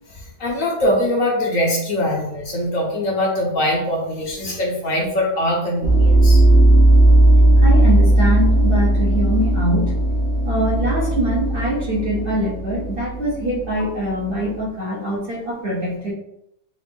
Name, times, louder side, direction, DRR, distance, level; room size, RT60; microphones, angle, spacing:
voice 1, 0.1-6.4, left 1 dB, 60° left, -1 dB, 1.1 m, -22 dB
sound 1, 5.8-14.5, right 1 dB, 5° left, 0.3 m, -16 dB
voice 2, 7.6-10.0 10.4-16.1, right 1 dB, 45° right, -6 dB, 0.9 m, -23 dB
4.1 x 2.5 x 3.4 m, 0.79 s
omnidirectional pair, 1.8 m